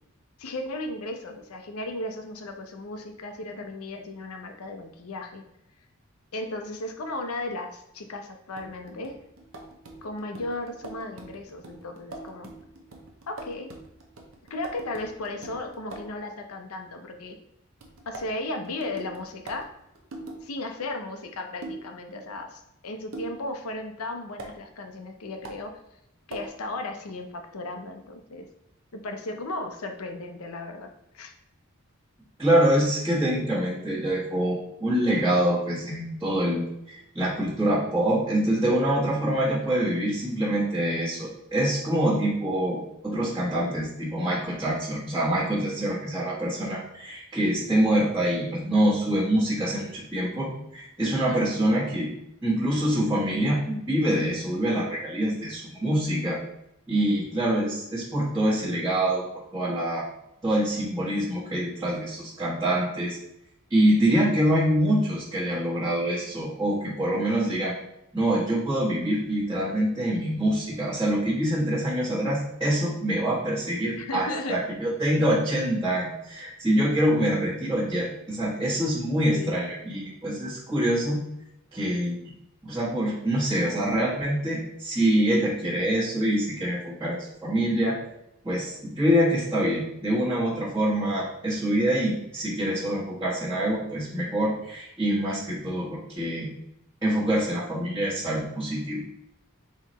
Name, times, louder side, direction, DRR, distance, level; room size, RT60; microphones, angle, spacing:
voice 1, 0.4-5.4 6.3-9.2 10.0-12.5 13.3-13.7 14.5-17.4 18.1-19.6 20.4-25.7 26.3-28.4 28.9-30.9 31.1-31.3 51.3-51.9 67.1-67.6 74.0-74.6 79.3-79.6, left 2 dB, 90° left, 5 dB, 0.7 m, -35 dB
sound 1, 8.6-16.2 17.8-20.4 21.6-21.9 23.1-23.4 24.4-24.5 25.4-25.6 26.3-26.6, right 2 dB, 65° right, 0.7 m, -43 dB
voice 2, 32.4-52.1 52.4-56.4 56.9-59.2 59.5-60.0 60.4-63.2 63.7-67.7 68.1-81.2 81.7-82.2 82.6-87.9 88.4-96.5 97.0-99.0, right 1 dB, 15° right, -11 dB, 1.2 m, -25 dB
4.0 x 3.1 x 4.1 m, 0.82 s
head